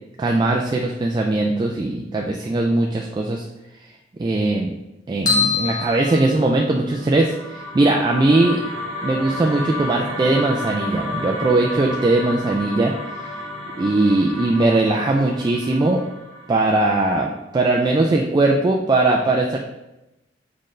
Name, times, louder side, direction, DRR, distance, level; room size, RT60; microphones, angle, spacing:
voice 1, 0.2-3.4 4.2-4.7 5.1-8.6 9.0-12.9 13.2-13.3 13.8-16.0 16.5-19.6, right 2 dB, 25° right, 0 dB, 0.3 m, -20 dB
sound 1, 5.3-7.0, left 5 dB, 20° left, 1.0 m, -24 dB
sound 2, 7.0-17.3, left 1 dB, 50° left, 1.5 m, -32 dB
4.2 x 3.8 x 3.2 m, 0.93 s
head